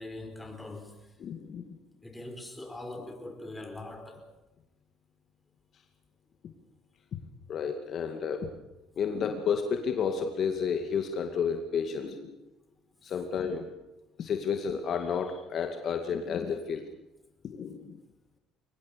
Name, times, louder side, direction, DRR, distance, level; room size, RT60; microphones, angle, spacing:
voice 1, 0.0-1.1 2.0-4.3, left 2 dB, 10° left, 4.9 m, -42 dB
voice 2, 1.2-1.8 7.5-8.5 9.0-12.4 13.0-13.7 14.2-16.8 17.4-18.0, left 6 dB, 50° left, 2.3 m, -31 dB
23.5 x 20.0 x 7.0 m
supercardioid pair, 95°, 0 cm